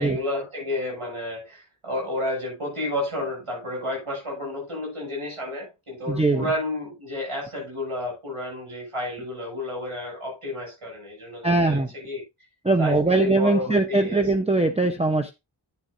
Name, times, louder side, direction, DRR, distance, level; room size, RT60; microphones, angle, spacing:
voice 1, 0.0-12.2 12.8-14.3, left 2 dB, 85° right, 7.1 m, -31 dB
voice 2, 6.1-6.5 11.4-11.9 12.6-15.3, right 2 dB, 10° right, 0.8 m, -21 dB
11.0 x 9.0 x 2.6 m
wide cardioid pair, 60°, 50 cm